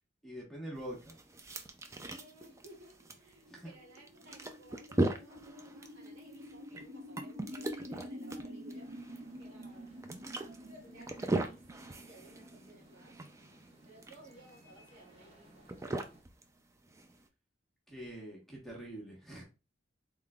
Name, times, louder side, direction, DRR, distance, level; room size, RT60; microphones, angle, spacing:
voice 1, 0.2-1.2 3.5-3.7 17.9-19.4, right 1 dB, ahead, 1.1 m, -44 dB
sound 1, 0.8-17.3, right 2 dB, 15° right, 0.3 m, -39 dB
voice 2, 2.0-8.9 9.4-10.0 10.3-11.7 12.0-13.2 13.8-15.7, right 1 dB, 85° right, 1.9 m, -58 dB
sound 2, 2.9-14.5, equal, 55° right, 0.6 m, -49 dB
sound 3, 8.5-16.2, equal, 30° right, 0.9 m, -61 dB
3.6 x 3.6 x 2.3 m
head